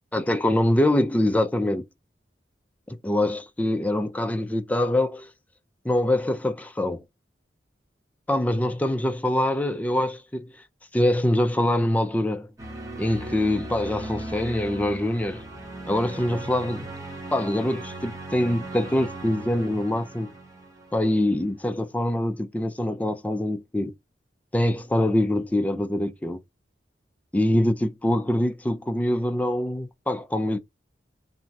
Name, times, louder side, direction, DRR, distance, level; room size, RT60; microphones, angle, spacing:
voice 1, 0.1-1.8 2.9-5.3 5.8-7.0 8.3-10.5 10.9-12.5 13.0-15.4 15.9-16.9 17.3-20.3 20.9-23.9 24.5-26.4 27.3-30.6, left 1 dB, 10° left, 0.4 m, -24 dB
sound 1, 12.6-21.4, right 2 dB, 20° right, 0.8 m, -38 dB
3.0 x 2.3 x 2.7 m
head